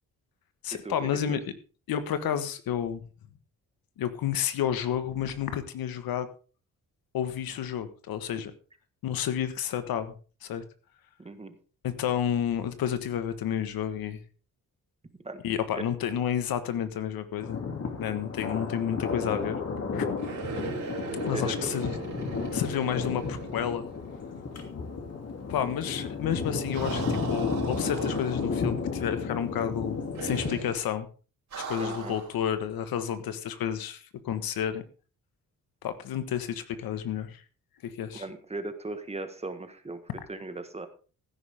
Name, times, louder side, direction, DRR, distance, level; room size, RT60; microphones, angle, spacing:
voice 1, 0.6-1.4 1.9-3.0 4.0-6.3 7.1-8.5 9.0-10.1 10.4-10.6 11.8-14.2 15.4-17.6 18.0-19.6 19.9-20.1 21.2-21.9 22.5-23.9 25.5-31.1 31.5-34.8 35.8-37.4 37.8-38.2, left 9 dB, 90° left, 11 dB, 1.5 m, -30 dB
voice 2, 11.2-11.6 15.2-15.4 15.7-15.8 21.2-21.7 31.8-32.2 38.1-40.0 40.3-40.9, right 2 dB, 20° right, 9 dB, 1.4 m, -38 dB
Thunder, 17.4-30.6, left 4 dB, 45° left, 2.8 m, -33 dB
sound 1, 20.2-24.3 24.6-24.7 26.7-28.7 30.1-30.8 31.5-32.4, right 4 dB, 55° right, 4.7 m, -38 dB
15.5 x 10.0 x 3.6 m, 0.37 s
cardioid pair, 130°, 35 cm